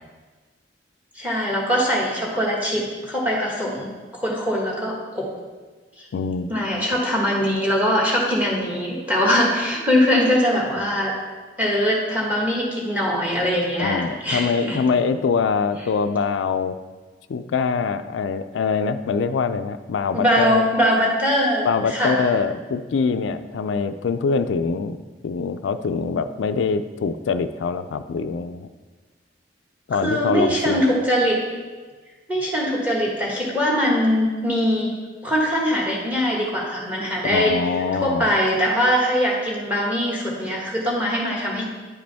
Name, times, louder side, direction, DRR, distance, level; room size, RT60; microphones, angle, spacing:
voice 1, 1.1-5.3 6.0-6.1 6.5-11.1 11.6-14.8 20.1-22.3 29.9-31.4 32.3-34.9 35.2-37.5 38.0-41.7, equal, 10° right, -3 dB, 1.5 m, -22 dB
voice 2, 6.1-6.5 13.8-16.8 17.3-20.7 21.6-25.0 25.2-28.7 29.9-30.8 37.2-38.3, left 5 dB, 90° left, 10 dB, 0.4 m, -24 dB
9.9 x 5.1 x 3.4 m, 1.4 s
head